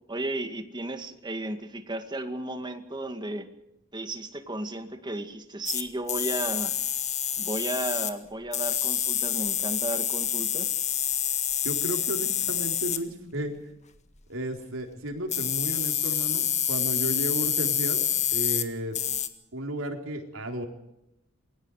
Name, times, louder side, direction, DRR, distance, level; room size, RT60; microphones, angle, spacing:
voice 1, 0.1-3.5 3.9-6.7 7.4-10.8, right 1 dB, 20° right, 7 dB, 2.1 m, -34 dB
sound 1, 5.7-5.8 6.1-8.1 8.5-13.0 15.3-18.7 18.9-19.3, left 9 dB, 35° left, 1.7 m, -27 dB
voice 2, 11.6-13.6 14.3-18.0 18.3-19.0 19.5-20.7, right 1 dB, 85° right, 2 dB, 4.2 m, -33 dB
28.0 x 22.5 x 5.0 m, 0.87 s
head